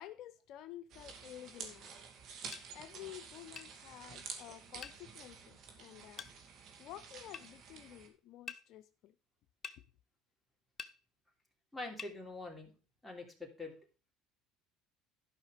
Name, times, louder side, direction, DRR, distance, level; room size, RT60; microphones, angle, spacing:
voice 1, 0.0-1.9 2.7-6.3 6.8-9.2, left 12 dB, 65° left, 0.6 m, -51 dB
sound 1, 0.9-8.1, right 6 dB, 55° right, 2.5 m, -50 dB
sound 2, 2.5-2.7 3.6-3.7 4.8-5.0 6.2-6.3 7.3-7.5 8.5-8.6 9.6-9.8 10.8-11.0 12.0-12.2, left 5 dB, 30° left, 0.9 m, -46 dB
voice 2, 11.7-12.7 13.0-13.8, left 2 dB, ahead, 3.2 m, -44 dB
12.0 x 5.7 x 5.1 m
supercardioid pair, 95°, 0 cm